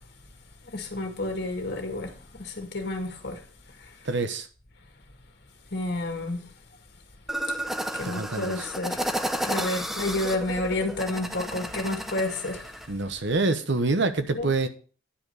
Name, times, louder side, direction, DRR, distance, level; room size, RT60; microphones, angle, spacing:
voice 1, 0.7-3.4 5.7-6.4 7.9-9.0 9.4-12.7 14.3-14.5, left 2 dB, 55° left, 2.0 m, -30 dB
voice 2, 4.0-4.5 8.0-8.7 12.9-14.7, right 3 dB, 65° right, 1.1 m, -26 dB
sound 1, 7.3-12.9, equal, ahead, 0.8 m, -32 dB
10.0 x 5.2 x 6.5 m
head